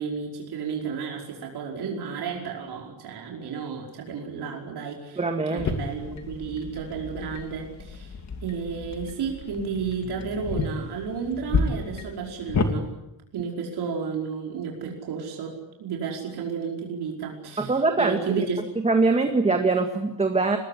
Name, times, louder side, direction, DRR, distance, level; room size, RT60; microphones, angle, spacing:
voice 1, 0.0-5.2 5.5-12.9 13.3-18.6, right 6 dB, 65° right, 0 dB, 5.2 m, -32 dB
voice 2, 5.2-5.7 17.6-18.2 18.8-20.6, right 3 dB, 15° right, 5 dB, 1.9 m, -22 dB
sound 1, 5.6-12.7, left 4 dB, 40° left, 2.9 m, -31 dB
26.0 x 20.5 x 9.9 m, 0.90 s
cardioid pair, 155°, 41 cm